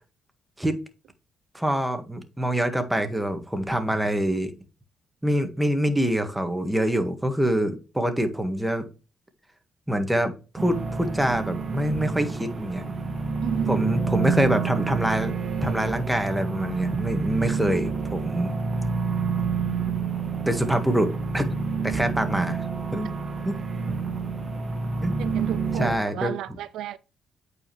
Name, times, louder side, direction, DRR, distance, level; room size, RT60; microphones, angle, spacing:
voice 1, 1.5-4.5 5.2-8.9 9.9-12.8 13.7-15.3 15.6-18.5 20.4-21.6 21.8-22.6 22.9-23.1 23.4-23.6 25.0-25.2 25.8-26.3, right 1 dB, 5° right, 1.6 m, -25 dB
sound 1, 10.6-26.0, right 5 dB, 35° right, 1.6 m, -28 dB
voice 2, 13.4-14.0 25.2-27.0, right 12 dB, 80° right, 0.4 m, -33 dB
8.6 x 4.8 x 3.2 m
cardioid pair, 90°, 0 cm